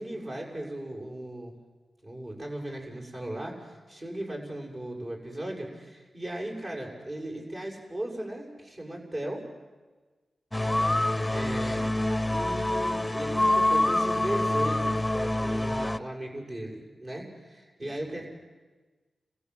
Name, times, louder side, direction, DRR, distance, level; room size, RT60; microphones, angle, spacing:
voice 1, 0.0-1.5 2.0-9.5 11.3-18.3, right 1 dB, 55° right, -1 dB, 6.9 m, -37 dB
sound 1, 10.5-16.0, left 1 dB, 15° left, 0.6 m, -26 dB
voice 2, 10.8-11.4 17.9-18.2, right 1 dB, 35° right, 4 dB, 2.6 m, -47 dB
26.5 x 15.5 x 8.0 m, 1.3 s
cardioid pair, 45°, 0 cm